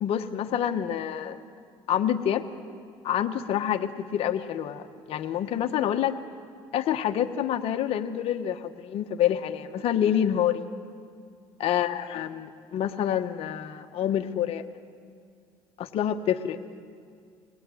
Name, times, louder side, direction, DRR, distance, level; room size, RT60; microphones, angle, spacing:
voice 1, 0.0-1.4 1.9-2.4 3.0-6.1 6.7-10.7 11.6-14.6 15.8-16.6, left 10 dB, 60° left, 6 dB, 1.2 m, -27 dB
23.0 x 19.0 x 9.2 m, 2.2 s
supercardioid pair, 95°, 11 cm